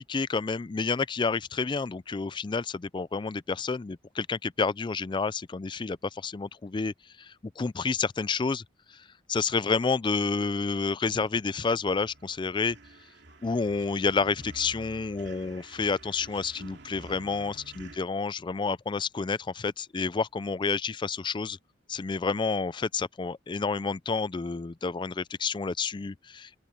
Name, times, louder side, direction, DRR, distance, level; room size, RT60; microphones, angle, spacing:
voice 1, 0.0-8.6 9.3-12.8 13.4-21.6 21.9-26.6, left 4 dB, 25° left, 0.4 m, -29 dB
sound 1, 11.2-18.0, right 2 dB, 70° right, 2.9 m, -50 dB
open air
head